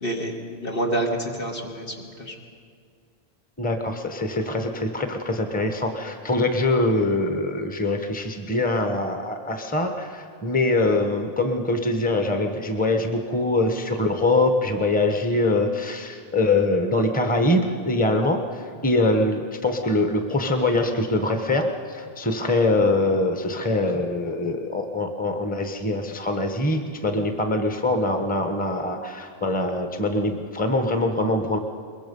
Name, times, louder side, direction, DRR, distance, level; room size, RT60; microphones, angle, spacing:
voice 1, 0.0-2.3, right 1 dB, 65° left, 0 dB, 2.5 m, -28 dB
voice 2, 3.6-31.6, left 2 dB, 10° left, 5 dB, 1.1 m, -23 dB
22.5 x 22.0 x 5.4 m, 2.2 s
omnidirectional pair, 1.1 m